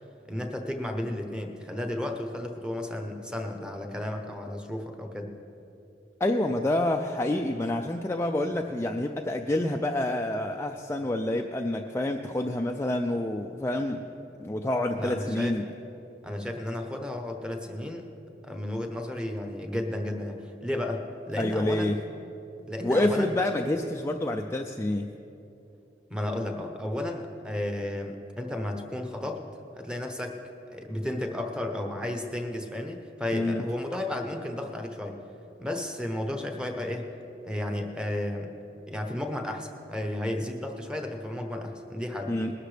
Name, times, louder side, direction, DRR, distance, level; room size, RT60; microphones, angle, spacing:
voice 1, 0.3-5.3 15.0-15.6 16.2-18.1 18.4-22.0 22.7-23.3 26.1-29.4 29.8-30.4 30.7-35.2 35.6-37.1 37.4-38.5 38.9-42.3, left 1 dB, 5° right, 4 dB, 1.0 m, -33 dB
voice 2, 6.2-14.1 14.4-15.7 21.4-22.0 22.8-25.1 33.3-33.6 42.3-42.5, left 1 dB, 15° left, 3 dB, 0.4 m, -28 dB
20.5 x 12.5 x 3.4 m, 2.8 s
head